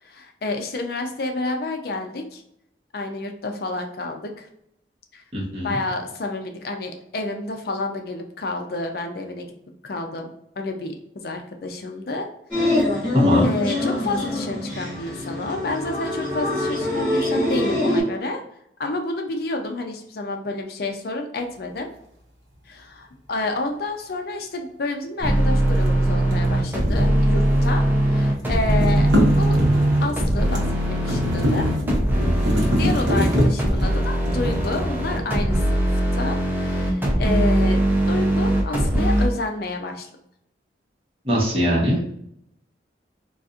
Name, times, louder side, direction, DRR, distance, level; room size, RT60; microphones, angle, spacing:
voice 1, 0.0-2.4 2.9-4.5 5.1-5.2 5.6-9.5 9.8-10.3 10.6-12.3 12.6-12.7 13.4-18.4 18.8-21.9 22.7-29.1 29.3-29.6 30.0-31.7 32.8-37.8 38.1-40.1, left 2 dB, 55° left, 4 dB, 0.5 m, -29 dB
voice 2, 5.3-5.8 13.1-13.5 32.4-32.7 41.2-42.0, equal, 30° right, -4 dB, 1.0 m, -21 dB
sound 1, 12.5-18.0, left 2 dB, 5° left, 1.3 m, -24 dB
sound 2, 25.2-39.3, right 1 dB, 10° right, 0.6 m, -21 dB
sound 3, 25.7-27.9 28.2-35.5, equal, 75° right, 0.9 m, -25 dB
3.9 x 2.4 x 2.4 m, 0.74 s
head